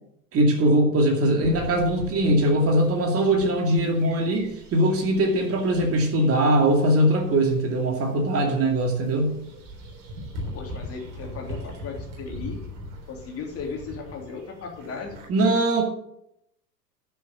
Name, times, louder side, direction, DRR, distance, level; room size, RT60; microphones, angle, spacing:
voice 1, 0.3-9.3 15.3-15.8, right 1 dB, 25° right, 2 dB, 2.5 m, -21 dB
sound 1, 1.4-15.3, equal, 45° right, 3.9 m, -41 dB
voice 2, 10.5-12.6 13.1-15.2, left 5 dB, 30° left, 1 dB, 3.1 m, -36 dB
10.0 x 6.8 x 7.3 m, 0.77 s
figure-of-eight pair, 100°, 50 cm